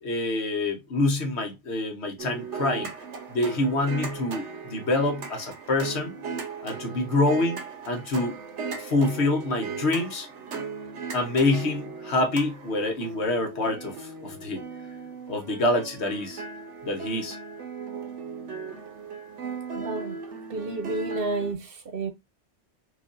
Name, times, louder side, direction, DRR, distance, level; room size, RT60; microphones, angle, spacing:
voice 1, 0.0-2.9 3.3-6.1 6.6-8.4 8.8-10.3 11.1-14.6 15.3-16.4 16.8-17.4, left 2 dB, 70° left, 1.3 m, -26 dB
sound 1, 2.2-21.5, right 5 dB, 85° right, 1.1 m, -37 dB
voice 2, 19.7-20.2 20.5-22.1, right 3 dB, 60° right, 0.9 m, -31 dB
4.6 x 2.6 x 2.5 m
omnidirectional pair, 1.2 m